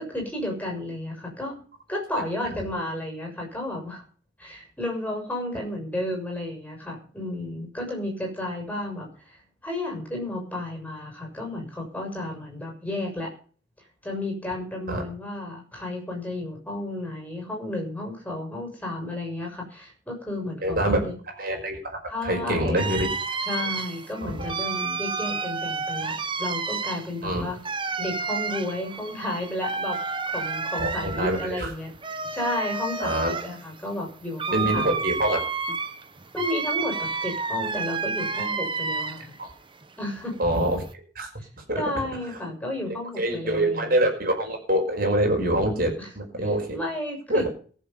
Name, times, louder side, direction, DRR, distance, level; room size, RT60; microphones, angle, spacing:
voice 1, 0.0-1.6 1.9-4.0 4.4-13.3 14.0-21.2 22.1-22.9 23.4-27.6 28.0-30.0 30.3-35.2 36.3-39.4 40.0-40.4 41.4-41.5 41.8-43.9 46.0-46.1 46.7-47.5, left 1 dB, 10° left, 1 dB, 6.9 m, -32 dB
voice 2, 20.6-21.0 21.4-23.1 24.2-24.5 27.2-27.4 30.8-31.7 33.0-33.4 34.5-35.5 39.4-39.5 40.4-41.3 41.6-41.8 43.2-46.7 47.3-47.5, right 1 dB, 50° right, 3 dB, 5.4 m, -25 dB
sound 1, 22.8-39.4 39.8-40.9, right 4 dB, 25° right, 1.1 m, -31 dB
22.5 x 7.6 x 5.5 m, 0.43 s
head